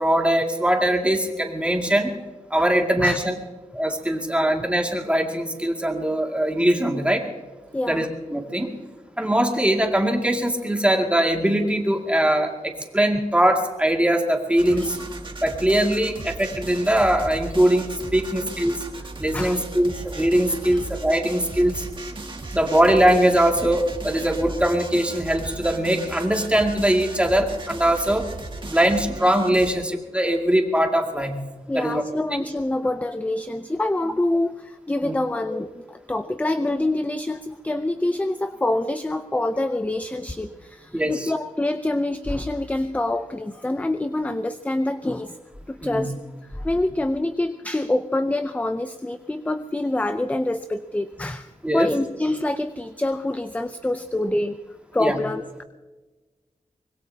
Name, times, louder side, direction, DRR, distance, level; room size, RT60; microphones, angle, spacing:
voice 1, 0.0-2.2 2.5-3.4 3.7-7.2 7.9-8.7 9.2-15.0 15.4-18.8 19.2-21.8 22.5-28.3 28.6-31.3 31.7-32.0 35.0-35.1 40.9-41.3 45.8-46.1 51.6-51.9 55.0-55.2, right 1 dB, 10° right, 1 dB, 2.3 m, -21 dB
voice 2, 7.7-8.1 14.7-14.8 19.3-19.6 20.7-20.8 31.7-45.4 45.7-46.1 46.5-54.6 54.9-55.6, left 1 dB, 10° left, 10 dB, 0.5 m, -26 dB
sound 1, 14.6-29.7, right 2 dB, 40° right, 1.9 m, -36 dB
24.0 x 21.0 x 2.8 m, 1.2 s
wide cardioid pair, 90°, 13 cm